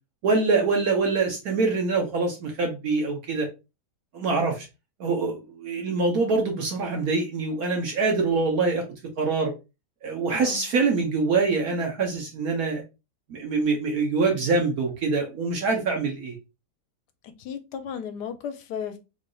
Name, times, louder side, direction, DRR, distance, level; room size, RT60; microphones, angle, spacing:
voice 1, 0.2-3.5 4.1-4.7 5.0-8.8 9.2-9.5 10.0-12.8 13.3-16.4, right 4 dB, 65° right, 1.2 m, -24 dB
voice 2, 10.3-10.6 17.4-19.0, left 7 dB, 80° left, 1.2 m, -34 dB
3.9 x 3.3 x 2.2 m
omnidirectional pair, 1.8 m